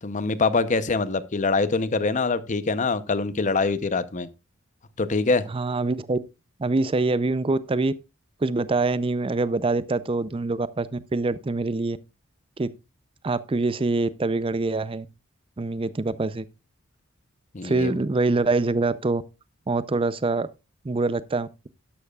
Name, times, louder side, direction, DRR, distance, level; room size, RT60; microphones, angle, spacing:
voice 1, 0.0-4.3 5.0-5.4 17.5-17.9, left 3 dB, 35° left, 0.7 m, -24 dB
voice 2, 5.5-6.2 6.6-7.9 8.4-12.0 12.6-12.7 13.2-15.1 15.6-16.4 17.6-19.2 19.7-20.5 20.8-21.7, right 3 dB, 25° right, 0.5 m, -25 dB
12.0 x 11.5 x 2.4 m
head